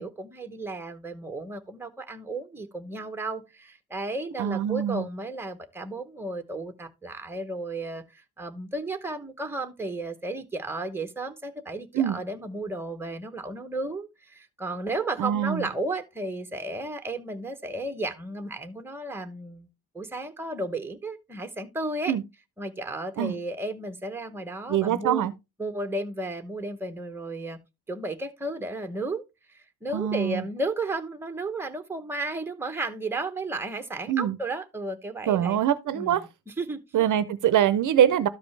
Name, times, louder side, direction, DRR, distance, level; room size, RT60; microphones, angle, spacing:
voice 1, 0.0-19.7 19.9-22.1 22.6-25.3 25.6-27.6 27.9-29.2 29.5-35.6 35.9-36.2 36.6-37.1, right 2 dB, 5° right, 0.9 m, -33 dB
voice 2, 4.4-5.1 11.9-12.2 15.2-15.7 22.1-22.2 23.2-23.3 24.7-25.3 29.9-30.4 34.1-34.4 35.3-36.2 36.9-38.3, right 10 dB, 55° right, 0.6 m, -24 dB
12.5 x 5.1 x 3.2 m
cardioid pair, 155°, 37 cm